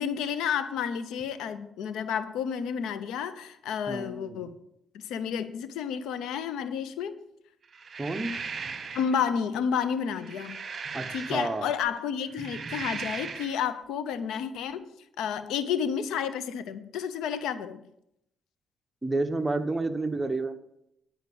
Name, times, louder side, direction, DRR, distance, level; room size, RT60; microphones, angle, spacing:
voice 1, 0.0-4.5 4.9-7.2 8.9-10.6 11.1-14.9 15.2-17.8, left 7 dB, 85° left, 12 dB, 0.7 m, -31 dB
voice 2, 3.9-4.4 8.0-8.3 10.9-11.7 19.0-20.6, right 2 dB, 15° right, 6 dB, 1.0 m, -30 dB
sound 1, 7.7-9.2 10.0-11.8 12.3-13.6, right 5 dB, 40° right, 1.2 m, -38 dB
10.5 x 5.0 x 6.9 m, 0.78 s
cardioid pair, 90°, 0 cm